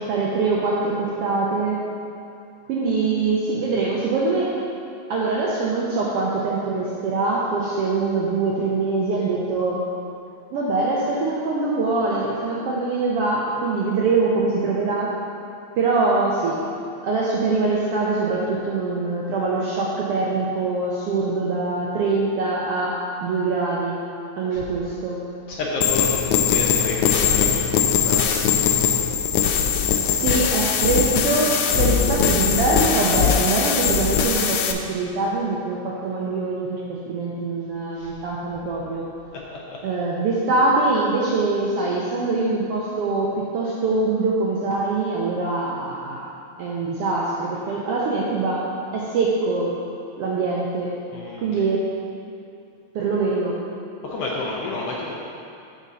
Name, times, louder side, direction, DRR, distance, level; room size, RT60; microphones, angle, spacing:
voice 1, 0.0-1.8 2.7-4.6 5.1-9.8 10.5-15.1 15.7-16.6 17.0-24.0 24.4-25.2 29.8-39.0 39.8-46.3 46.6-48.6 48.9-49.8 50.2-51.0 51.4-51.9 52.9-53.6, right 3 dB, 75° right, -4 dB, 1.4 m, -23 dB
voice 2, 25.5-28.4 38.0-38.2 39.3-39.8 51.1-51.7 54.0-55.1, left 2 dB, 70° left, -3 dB, 1.5 m, -30 dB
sound 1, 25.8-34.7, left 8 dB, 90° left, 2.0 m, -21 dB
7.8 x 6.2 x 4.0 m, 2.6 s
omnidirectional pair, 3.3 m